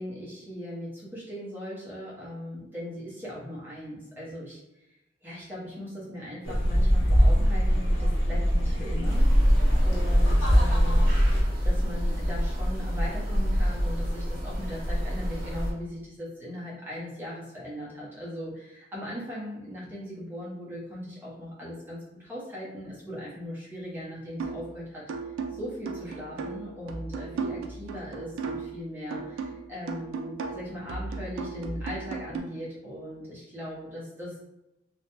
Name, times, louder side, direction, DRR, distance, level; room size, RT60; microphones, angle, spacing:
voice 1, 0.0-4.6 5.2-34.4, left 1 dB, 10° right, -7 dB, 0.8 m, -39 dB
sound 1, 6.4-11.4, equal, 75° left, 0.9 m, -22 dB
sound 2, 9.0-15.7, equal, 45° right, 0.7 m, -26 dB
sound 3, 24.4-24.7 25.1-28.8 29.1-32.4, right 4 dB, 85° right, 0.3 m, -35 dB
2.5 x 2.1 x 2.9 m, 0.90 s
head